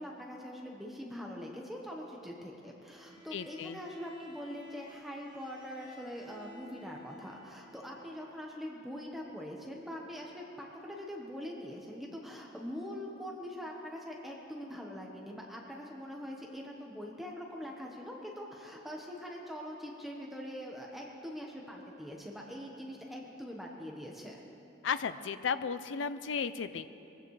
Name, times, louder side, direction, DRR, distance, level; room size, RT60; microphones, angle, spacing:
voice 1, 0.0-24.4, equal, ahead, -1 dB, 1.1 m, -43 dB
Bowed string instrument, 2.9-8.5, equal, 30° right, 2.3 m, -54 dB
voice 2, 3.3-3.8 24.8-26.9, left 6 dB, 85° left, 12 dB, 0.5 m, -34 dB
22.0 x 15.0 x 3.2 m, 2.9 s
head